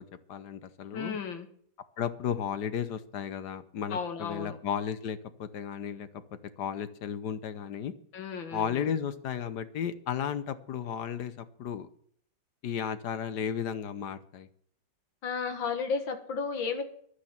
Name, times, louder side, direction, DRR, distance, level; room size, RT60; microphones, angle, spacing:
voice 1, 0.0-1.2 2.0-6.1 6.6-7.9 8.5-11.9 12.6-14.5, left 8 dB, 65° left, 13 dB, 1.4 m, -34 dB
voice 2, 0.9-1.5 3.9-4.6 8.1-8.9 15.2-16.8, left 5 dB, 85° left, 7 dB, 2.3 m, -33 dB
11.5 x 9.8 x 7.3 m, 0.62 s
omnidirectional pair, 2.1 m